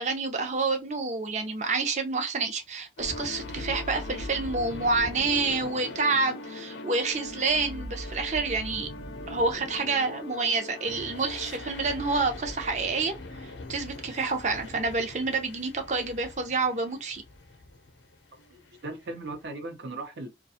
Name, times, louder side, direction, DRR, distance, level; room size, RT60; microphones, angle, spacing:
voice 1, 0.0-8.9 9.3-13.1 13.7-17.2, right 3 dB, 40° right, 0.5 m, -28 dB
sound 1, 3.0-19.4, left 2 dB, 90° left, 0.6 m, -40 dB
voice 2, 18.5-20.3, right 2 dB, 80° right, 0.7 m, -38 dB
2.4 x 2.3 x 2.7 m
head